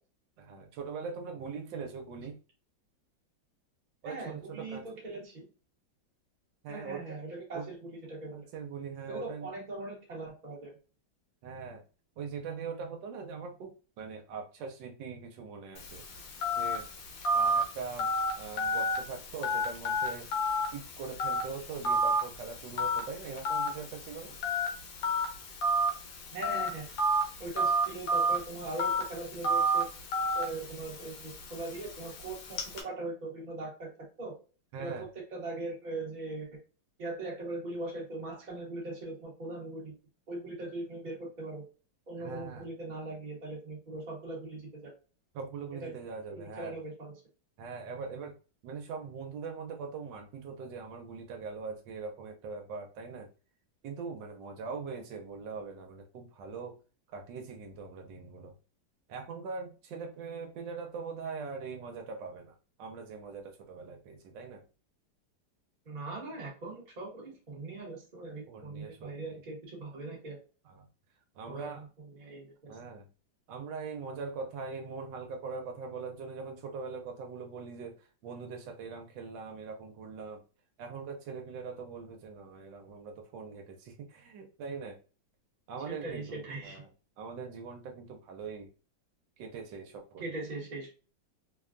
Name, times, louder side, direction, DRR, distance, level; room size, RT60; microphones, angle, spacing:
voice 1, 0.4-2.4 4.0-4.4 4.7-4.8 6.6-7.2 7.5-7.7 8.3-9.5 11.4-11.8 12.2-16.0 16.5-16.9 17.3-18.1 18.4-20.3 20.7-24.4 34.7-35.0 42.2-42.7 45.3-46.8 47.6-48.3 48.6-53.3 53.8-56.8 57.1-58.5 59.1-64.6 68.5-69.1 70.7-70.9 71.4-71.8 72.7-73.1 73.5-80.4 80.8-85.0 85.7-86.9 87.2-88.7 89.4-90.2, right 5 dB, 80° right, 4 dB, 1.2 m, -42 dB
voice 2, 4.0-5.5 6.7-8.4 9.1-10.7 26.3-26.9 27.4-29.9 30.3-33.9 34.2-34.4 34.8-36.5 37.0-39.9 40.3-41.6 42.1-44.9 45.8-45.9 46.3-47.1 65.9-70.4 71.5-72.8 85.9-86.8 90.2-90.9, right 2 dB, 35° right, -3 dB, 0.8 m, -40 dB
Telephone, 15.8-32.8, right 1 dB, 75° left, 1.4 m, -32 dB
3.3 x 2.1 x 2.4 m, 0.35 s
omnidirectional pair, 2.0 m